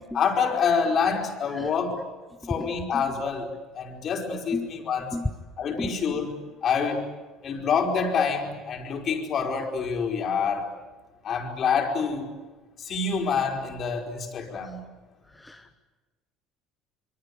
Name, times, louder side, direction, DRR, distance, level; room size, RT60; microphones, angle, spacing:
voice 1, 0.1-2.0 2.5-5.2 5.6-7.1 7.4-10.7 11.2-12.3 12.8-14.8, left 6 dB, 45° left, 2 dB, 4.9 m, -27 dB
voice 2, 15.4-15.7, left 2 dB, 5° left, 6 dB, 1.0 m, -32 dB
26.5 x 23.5 x 8.6 m, 1.2 s
cardioid pair, 130°, 0 cm